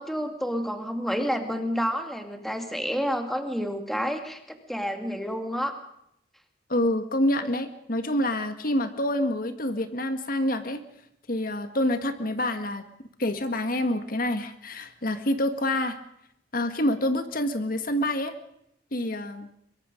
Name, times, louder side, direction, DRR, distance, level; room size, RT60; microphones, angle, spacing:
voice 1, 0.0-5.8, equal, ahead, 5 dB, 2.3 m, -29 dB
voice 2, 6.7-10.8 11.3-12.8 13.2-16.0 16.5-18.3 18.9-19.5, left 1 dB, 50° left, 8 dB, 1.8 m, -27 dB
23.5 x 22.5 x 5.3 m, 0.75 s
head